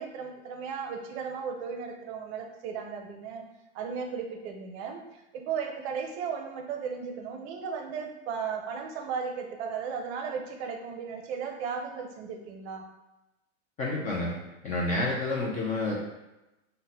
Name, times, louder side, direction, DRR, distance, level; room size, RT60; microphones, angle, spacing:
voice 1, 0.0-3.4 3.7-12.9, right 6 dB, 55° right, 4 dB, 0.6 m, -35 dB
voice 2, 13.8-14.4 14.6-16.0, left 2 dB, 20° left, -4 dB, 0.3 m, -29 dB
2.6 x 2.1 x 3.9 m, 0.98 s
hypercardioid pair, 120°, 40 cm